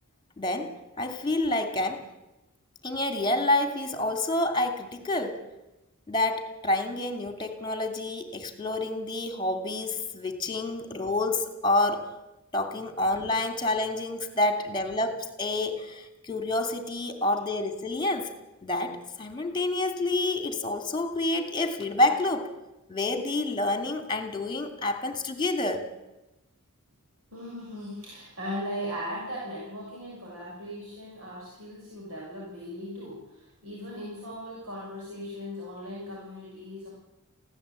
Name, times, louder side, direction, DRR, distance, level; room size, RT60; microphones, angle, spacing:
voice 1, 0.4-2.0 2.8-5.4 6.1-12.1 12.5-18.3 18.6-22.5 22.9-25.9, left 2 dB, 20° left, 6 dB, 2.7 m, -28 dB
voice 2, 27.3-36.9, equal, 70° right, -4 dB, 6.8 m, -38 dB
23.5 x 16.5 x 8.5 m, 0.97 s
head